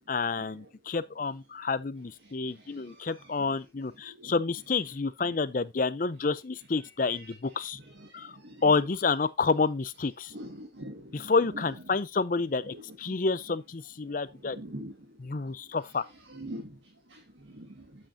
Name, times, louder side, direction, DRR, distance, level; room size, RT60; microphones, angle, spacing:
voice 1, 0.1-7.8 8.1-8.3 8.6-10.3 11.1-14.6 15.2-16.1, left 4 dB, 45° left, 0.5 m, -29 dB
voice 2, 10.3-11.3 12.7-12.8 13.1-13.2 14.5-14.9 16.3-16.7 17.1-17.2 17.5-17.7, equal, 80° right, 1.6 m, -42 dB
8.9 x 7.7 x 2.6 m
head